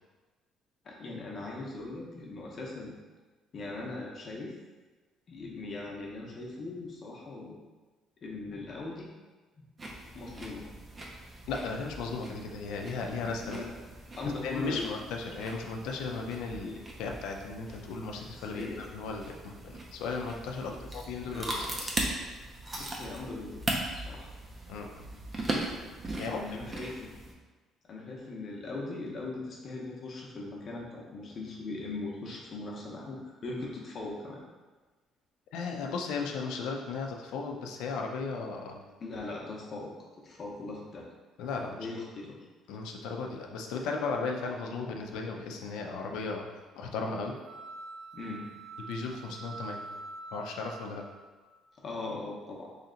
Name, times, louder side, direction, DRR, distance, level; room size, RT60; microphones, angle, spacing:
voice 1, 0.8-2.9 3.5-4.5 5.3-7.6 8.2-9.1 9.6-9.7 10.1-10.7 13.4-13.7 14.2-15.0 16.6-16.8 18.5-18.8 20.6-21.7 22.8-23.6 23.9-24.3 26.1-27.2 27.8-34.4 39.0-39.9 40.2-41.1 41.6-42.4 48.1-48.5 51.8-52.7, left 2 dB, 30° left, -2 dB, 0.7 m, -40 dB
sound 1, 9.8-27.3, right 2 dB, 20° right, 0.5 m, -39 dB
voice 2, 11.5-13.6 14.4-21.9 24.7-25.1 26.2-26.4 35.5-38.9 41.4-41.8 42.7-47.4 48.8-50.0 50.3-51.1, left 4 dB, 90° left, 2 dB, 0.5 m, -36 dB
sound 2, 47.4-51.5, right 3 dB, 60° right, 0.7 m, -45 dB
3.2 x 2.8 x 3.8 m, 1.3 s
cardioid pair, 170°, 0 cm